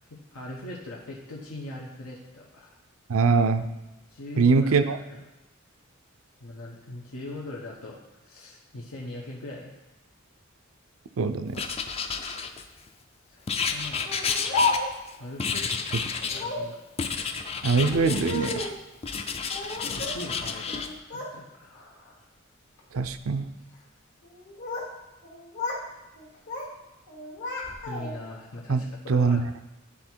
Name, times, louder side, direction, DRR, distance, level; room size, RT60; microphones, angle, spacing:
voice 1, 0.0-2.8 4.1-5.3 6.4-8.0 8.2-9.8 13.3-14.1 15.2-16.8 19.3-21.8 27.9-29.4, left 2 dB, 90° left, -3 dB, 1.0 m, -41 dB
voice 2, 3.1-3.7 4.4-5.0 11.2-11.6 17.6-18.7 22.9-23.5 28.7-28.8 29.1-29.4, right 4 dB, 70° right, 10 dB, 0.5 m, -22 dB
Writing, 11.5-12.9 13.5-15.1 15.4-16.5 17.0-18.7 19.0-20.9, left 5 dB, 30° left, 0.4 m, -31 dB
Speech, 14.1-15.2 16.3-16.8 17.7-18.8 19.5-20.3 20.6-21.3 21.7-22.1 22.8-23.1 24.2-24.9 25.2-25.9 26.2-26.7 27.1-28.3, left 3 dB, 60° left, 1.4 m, -32 dB
9.9 x 3.5 x 4.5 m, 0.98 s
head